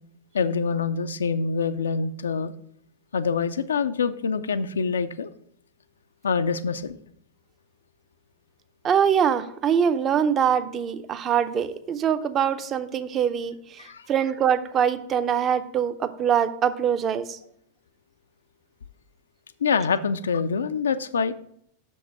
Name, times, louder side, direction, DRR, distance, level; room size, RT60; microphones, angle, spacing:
voice 1, 0.3-2.5 3.1-5.3 6.2-7.0 13.8-14.1 19.6-21.3, left 5 dB, 70° left, 12 dB, 0.3 m, -25 dB
voice 2, 8.8-17.4, right 8 dB, 30° right, 12 dB, 0.5 m, -23 dB
6.2 x 5.3 x 4.8 m, 0.69 s
figure-of-eight pair, 90°, 0 cm